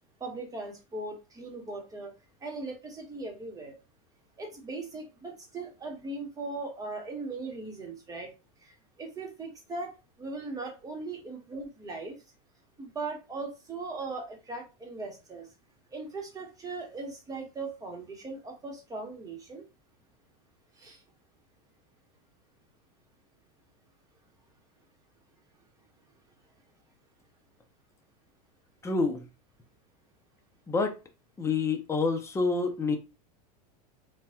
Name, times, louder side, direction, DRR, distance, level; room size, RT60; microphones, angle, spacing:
voice 1, 0.2-2.1 2.4-3.7 4.4-8.3 9.0-9.9 10.2-12.1 12.8-15.5 15.9-19.6 20.8-21.0, right 3 dB, 15° right, 1.1 m, -39 dB
voice 2, 28.8-29.2 30.7-31.0 31.4-33.0, left 4 dB, 15° left, 0.6 m, -27 dB
2.9 x 2.3 x 2.8 m
supercardioid pair, 115°, 20 cm